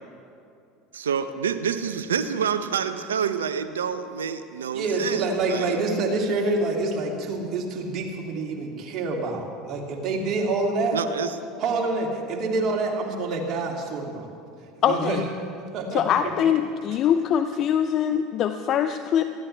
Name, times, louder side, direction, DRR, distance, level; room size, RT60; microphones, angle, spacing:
voice 1, 0.9-5.8 10.9-11.4, right 7 dB, 85° right, 11 dB, 0.6 m, -28 dB
voice 2, 4.7-11.0 11.6-14.3 14.9-15.2 15.7-16.3, right 3 dB, 50° right, 0 dB, 2.6 m, -27 dB
voice 3, 14.8-15.2 15.9-19.2, left 9 dB, 50° left, 9 dB, 0.5 m, -23 dB
19.0 x 14.5 x 3.4 m, 2.5 s
hypercardioid pair, 80°, 0 cm